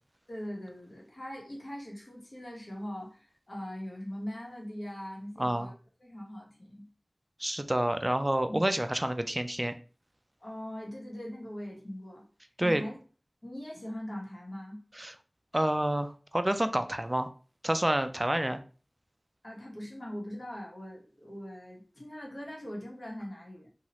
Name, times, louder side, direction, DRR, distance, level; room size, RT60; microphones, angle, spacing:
voice 1, 0.3-5.7 6.0-6.9 8.4-8.6 10.4-12.3 12.6-13.0 13.4-14.8 19.4-23.7, equal, 45° left, -2 dB, 1.1 m, -41 dB
voice 2, 5.4-5.7 7.4-9.7 12.6-12.8 15.0-15.1 15.5-17.3 17.6-18.6, right 1 dB, 25° right, 9 dB, 0.3 m, -28 dB
2.9 x 2.4 x 2.9 m, 0.38 s
wide cardioid pair, 55°, 0 cm